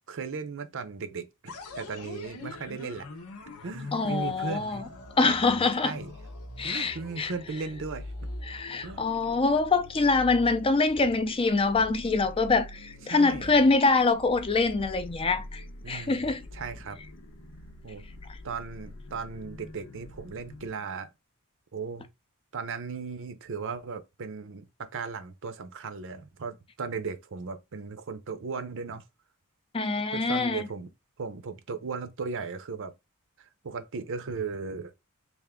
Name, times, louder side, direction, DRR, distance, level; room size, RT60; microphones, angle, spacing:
voice 1, 0.1-1.3 1.8-3.1 3.6-4.9 5.2-5.4 5.8-6.1 6.6-8.3 8.8-9.0 13.1-13.5 15.8-17.0 17.8-18.0 18.4-21.1 21.7-22.1 22.5-29.0 30.1-30.9 31.2-32.9 33.4-34.9, right 5 dB, 60° right, 0.6 m, -36 dB
sound 1, 1.5-20.7, left 2 dB, 90° left, 0.8 m, -44 dB
voice 2, 3.9-4.8 5.2-6.0 6.6-7.3 8.4-16.4 29.7-30.7, left 3 dB, 25° left, 0.5 m, -25 dB
3.4 x 2.5 x 3.6 m
head